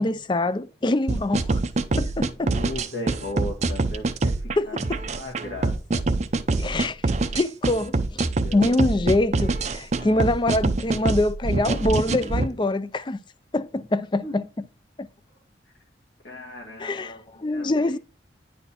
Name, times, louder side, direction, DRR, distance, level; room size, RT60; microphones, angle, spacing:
voice 1, 0.0-1.6 2.0-2.5 4.6-5.0 6.6-7.0 7.3-13.2 13.5-14.4 16.8-18.0, left 2 dB, 25° left, 0.4 m, -24 dB
sound 1, 1.1-12.5, right 3 dB, 35° right, 0.5 m, -25 dB
voice 2, 2.5-4.8 5.1-6.0 8.4-8.6 14.2-14.3 16.2-18.0, left 1 dB, 75° left, 1.7 m, -36 dB
9.9 x 4.2 x 4.2 m
head